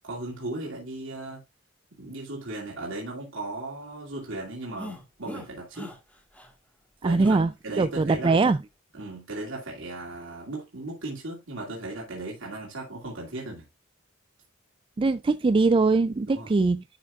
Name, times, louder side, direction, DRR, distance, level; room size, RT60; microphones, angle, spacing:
voice 1, 0.0-1.4 2.0-6.0 7.0-7.4 7.6-8.3 8.9-13.6 16.3-16.5, right 2 dB, 70° right, 2.5 m, -36 dB
sound 1, 4.8-5.5 5.7-6.0 6.3-6.5 7.2-7.5 8.3-8.6, equal, 5° left, 1.6 m, -40 dB
voice 2, 7.0-7.5 7.8-8.6 15.0-16.8, right 3 dB, 25° right, 0.3 m, -22 dB
11.0 x 6.1 x 2.4 m
head